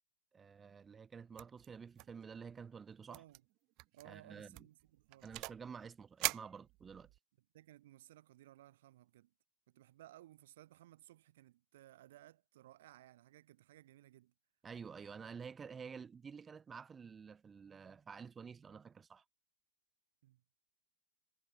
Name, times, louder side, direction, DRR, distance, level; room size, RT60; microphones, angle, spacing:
voice 1, 0.3-3.2 4.0-4.7 5.2-7.1 14.6-19.2, right 6 dB, 10° right, 4.0 m, -50 dB
sound 1, 1.4-1.7 2.0-2.5 3.1-3.4 3.8-4.0 4.5-5.7 6.2-7.2, right 23 dB, 35° right, 1.1 m, -42 dB
voice 2, 3.1-3.4 3.9-5.4 7.5-9.3 9.7-14.3 20.2-20.4, right 14 dB, 55° right, 4.1 m, -60 dB
hypercardioid pair, 155°, 0 cm